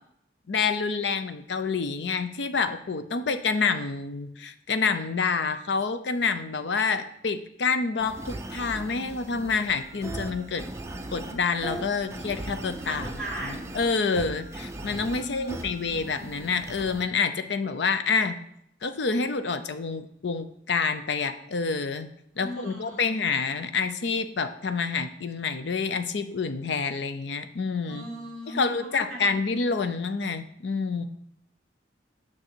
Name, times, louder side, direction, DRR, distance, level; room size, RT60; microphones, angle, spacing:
voice 1, 0.5-10.6 11.1-13.1 13.4-18.4 18.8-22.1 22.4-28.0 28.5-31.1, left 5 dB, 70° left, 10 dB, 0.6 m, -28 dB
sound 1, 8.0-17.1, right 1 dB, 15° right, 0.5 m, -38 dB
voice 2, 12.8-13.6 15.1-15.9 22.4-23.1 27.9-29.3, equal, 5° left, -8 dB, 2.8 m, -38 dB
6.5 x 6.1 x 4.5 m, 0.74 s
head